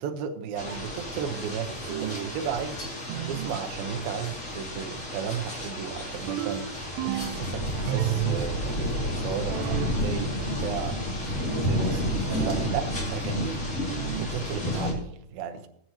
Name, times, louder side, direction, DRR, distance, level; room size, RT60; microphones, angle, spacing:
voice 1, 0.0-15.7, right 8 dB, 70° right, 2.6 m, -35 dB
sound 1, 0.5-14.9, left 1 dB, 25° left, 2.4 m, -31 dB
sound 2, 1.9-2.4 3.1-3.6 6.3-7.5 7.9-8.5 9.5-10.0 12.3-12.8 13.9-14.4, right 16 dB, 90° right, 2.8 m, -32 dB
20.0 x 9.1 x 3.0 m
omnidirectional pair, 4.9 m